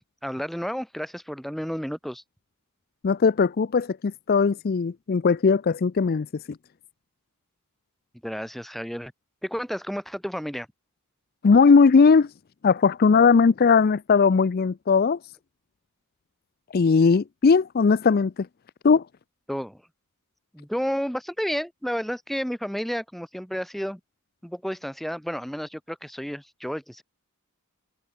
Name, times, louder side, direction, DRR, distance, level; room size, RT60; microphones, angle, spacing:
voice 1, 0.2-2.2 8.2-9.1 9.4-10.7 19.5-19.8 20.5-24.0 24.4-27.0, equal, ahead, 0.9 m, -31 dB
voice 2, 3.0-6.3 11.4-12.3 12.6-15.2 16.7-18.5 18.8-19.0, left 5 dB, 45° left, 0.4 m, -19 dB
head